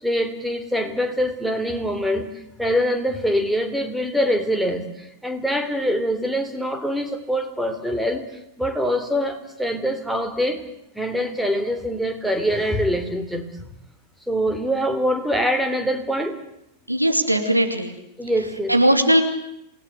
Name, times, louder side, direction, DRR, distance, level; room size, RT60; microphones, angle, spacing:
voice 1, 0.0-2.3 2.6-8.2 8.6-10.6 11.0-13.5 14.3-16.4 18.2-18.8, equal, ahead, 7 dB, 3.6 m, -24 dB
voice 2, 16.9-17.9 18.7-19.2, right 1 dB, 90° right, 5 dB, 3.0 m, -18 dB
28.0 x 19.5 x 8.2 m, 0.81 s
figure-of-eight pair, 90°, 0 cm